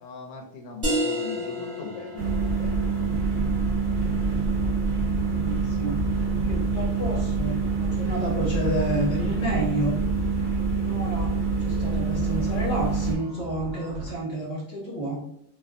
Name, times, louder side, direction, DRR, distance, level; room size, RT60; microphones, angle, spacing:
voice 1, 0.0-2.9, left 4 dB, 75° left, 2 dB, 1.0 m, -40 dB
sound 1, 0.8-6.2, equal, 40° right, 1.1 m, -33 dB
sound 2, 2.2-13.1, right 4 dB, 25° right, 0.5 m, -26 dB
sound 3, 3.1-14.1, right 2 dB, 75° right, 1.1 m, -38 dB
voice 2, 5.3-10.0 10.7-11.3 11.6-15.2, right 1 dB, 30° left, -4 dB, 0.5 m, -30 dB
3.3 x 2.0 x 2.4 m, 0.71 s
omnidirectional pair, 1.7 m